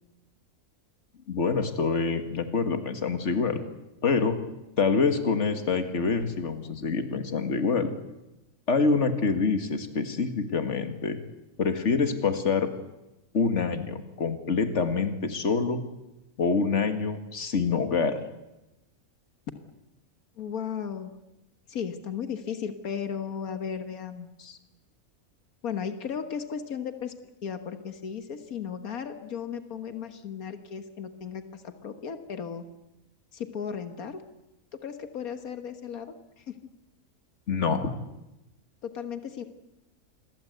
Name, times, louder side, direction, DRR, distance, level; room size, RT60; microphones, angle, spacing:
voice 1, 1.3-3.6 4.0-4.4 4.8-7.9 8.7-11.2 11.6-12.7 13.3-15.8 16.4-18.2 37.5-37.9, left 4 dB, 55° left, 8 dB, 2.2 m, -26 dB
voice 2, 20.4-21.1 21.7-24.6 25.6-27.1 27.4-32.6 33.3-34.2 34.7-36.6 38.8-39.4, left 7 dB, 90° left, 8 dB, 1.9 m, -35 dB
28.0 x 22.0 x 8.1 m, 0.95 s
omnidirectional pair, 1.5 m